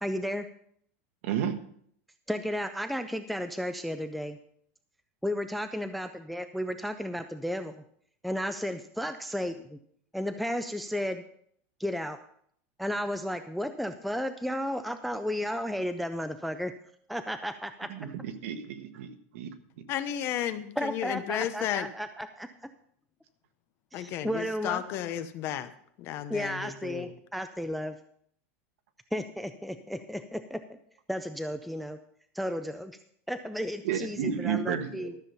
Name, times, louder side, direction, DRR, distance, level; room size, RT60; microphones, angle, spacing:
voice 1, 0.0-0.5 2.3-4.4 5.2-7.7 8.2-9.8 10.1-11.2 11.8-12.2 12.8-16.7 17.1-17.9 20.8-22.7 23.9-24.8 26.3-28.0 29.1-30.8 31.1-32.0 32.3-33.0 33.3-35.2, equal, ahead, 9 dB, 0.3 m, -33 dB
voice 2, 1.2-1.6 17.9-19.5 33.8-35.1, right 8 dB, 70° right, 8 dB, 1.4 m, -32 dB
voice 3, 19.9-21.9 23.9-25.7 26.0-27.1, left 11 dB, 35° left, 11 dB, 0.8 m, -33 dB
13.0 x 7.3 x 5.5 m, 0.65 s
supercardioid pair, 170°, 7 cm